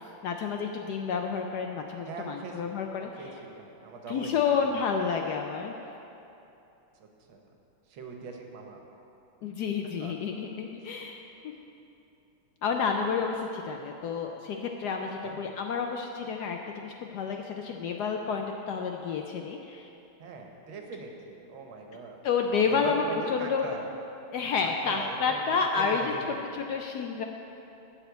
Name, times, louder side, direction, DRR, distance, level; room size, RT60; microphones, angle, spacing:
voice 1, 0.2-3.1 4.1-5.7 9.4-11.2 12.6-19.9 22.2-23.7 24.3-26.1 26.5-27.2, left 5 dB, 75° left, 3 dB, 0.9 m, -30 dB
voice 2, 2.0-2.7 3.0-4.8 7.0-7.5 7.9-8.8 10.0-10.1 15.2-15.4 20.2-22.2 22.6-23.9 24.6-26.4, right 4 dB, 80° right, 2 dB, 1.9 m, -41 dB
12.0 x 4.3 x 8.1 m, 2.9 s
omnidirectional pair, 2.2 m